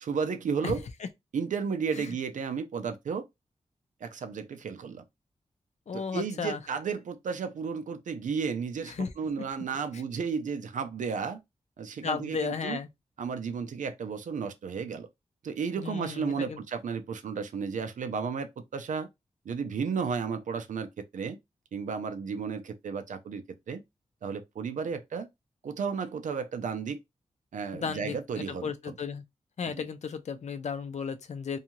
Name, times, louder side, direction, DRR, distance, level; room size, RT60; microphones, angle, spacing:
voice 1, 0.0-0.9 1.3-3.2 4.0-5.0 5.9-11.4 11.8-12.8 13.2-15.1 15.4-19.1 19.5-21.4 21.7-23.8 24.2-25.3 25.6-27.0 27.5-28.9 29.7-29.9, right 6 dB, 85° right, 0.5 m, -33 dB
voice 2, 5.9-6.6 8.9-9.1 12.0-12.9 15.8-16.6 27.7-29.2 29.6-31.6, left 5 dB, 65° left, 0.5 m, -34 dB
2.6 x 2.3 x 2.9 m
wide cardioid pair, 95°, 13 cm